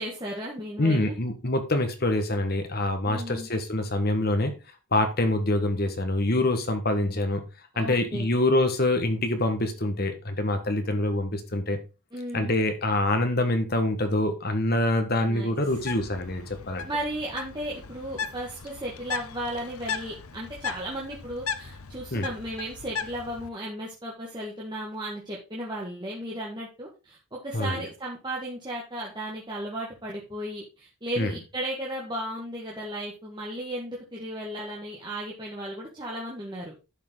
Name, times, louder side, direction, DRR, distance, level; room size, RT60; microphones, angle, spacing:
voice 1, 0.0-1.2 3.1-3.5 7.7-8.3 12.1-12.6 15.2-15.5 16.8-36.7, right 1 dB, 20° right, 1.8 m, -35 dB
voice 2, 0.8-4.5 4.9-7.4 7.8-11.8 12.3-16.9 22.1-22.3 27.5-27.8 31.2-31.3, left 1 dB, 45° left, 1.4 m, -25 dB
Bird, 15.7-23.5, left 6 dB, 75° left, 0.8 m, -37 dB
11.5 x 5.7 x 3.9 m
head